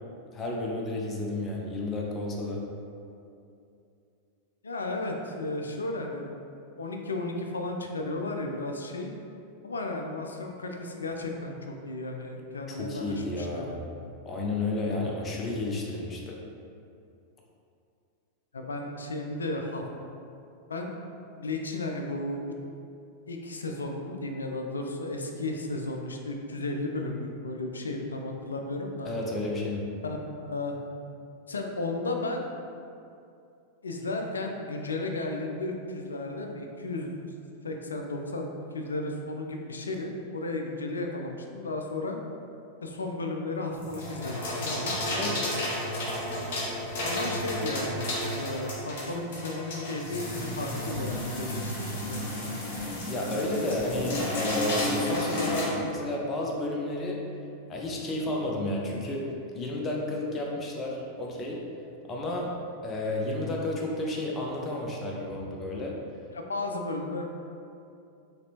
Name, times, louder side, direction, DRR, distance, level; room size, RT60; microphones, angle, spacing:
voice 1, 0.3-2.6 12.7-13.8 14.2-16.4 29.0-29.8 45.1-45.3 52.9-57.2 57.7-59.3 59.5-61.6 62.1-62.5 62.8-65.9, left 2 dB, 25° left, -1 dB, 0.6 m, -31 dB
voice 2, 4.6-6.3 6.8-9.1 9.6-13.7 15.0-15.1 18.5-19.8 20.7-20.9 21.3-22.4 23.3-29.1 30.0-30.8 31.5-32.5 33.8-37.1 37.6-42.2 42.8-45.4 47.0-48.1 48.3-52.6 66.3-67.3, left 2 dB, 75° left, 2 dB, 0.4 m, -34 dB
sound 1, 43.7-55.7, left 1 dB, 50° left, 1.0 m, -32 dB
4.1 x 3.1 x 2.8 m, 2.6 s
figure-of-eight pair, 90°, 0 cm